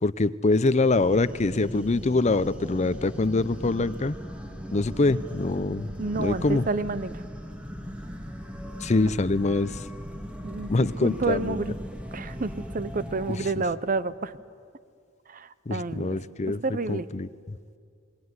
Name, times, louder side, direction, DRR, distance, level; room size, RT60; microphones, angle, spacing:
voice 1, 0.0-4.2 4.7-5.9 6.2-6.6 8.8-9.9 10.7-11.6 15.7-16.6 16.9-17.3, left 2 dB, 35° left, 16 dB, 0.6 m, -24 dB
sound 1, 0.8-13.5, equal, 5° right, 1.8 m, -39 dB
sound 2, 3.1-13.1, equal, 30° right, 7.1 m, -48 dB
voice 2, 6.0-7.2 9.0-9.1 10.4-11.7 12.1-14.3 15.3-16.2 16.6-17.1, right 3 dB, 45° right, 16 dB, 0.7 m, -30 dB
27.5 x 20.5 x 9.6 m, 2.2 s
head